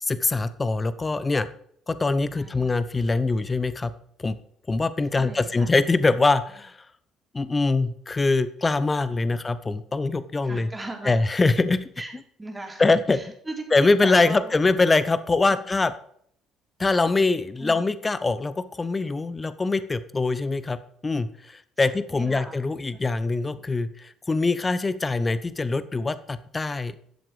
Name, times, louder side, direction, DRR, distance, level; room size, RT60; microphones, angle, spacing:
voice 1, 0.0-1.5 1.9-3.9 4.2-4.4 4.7-6.9 7.3-10.7 11.0-11.9 12.8-13.2 13.7-15.9 16.8-27.0, left 3 dB, 25° left, 14 dB, 0.9 m, -23 dB
voice 2, 2.3-2.8 5.1-5.7 10.4-11.2 12.0-12.1 12.4-12.8 13.1-14.6 15.5-15.7 17.6-17.8 21.8-22.6 22.9-23.0 23.5-23.7, right 2 dB, 15° right, 2 dB, 3.6 m, -38 dB
12.5 x 7.6 x 5.0 m, 0.64 s
hypercardioid pair, 60°, 0 cm